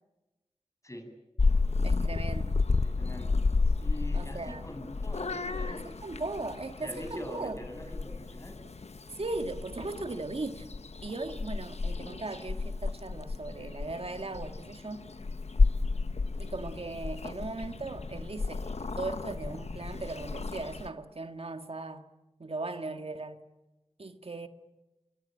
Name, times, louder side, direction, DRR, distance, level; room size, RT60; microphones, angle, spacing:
Purr / Meow, 1.4-20.9, left 3 dB, 80° left, 1.0 m, -32 dB
voice 1, 1.8-2.6 4.1-4.7 5.7-7.9 9.1-10.7 11.0-15.1 16.4-22.0 22.4-23.4 24.0-24.5, right 2 dB, 65° right, 2.0 m, -38 dB
voice 2, 2.8-3.4 3.8-6.2 6.8-8.6, equal, 30° left, 7.8 m, -43 dB
27.5 x 22.5 x 9.0 m
wide cardioid pair, 45°, 11 cm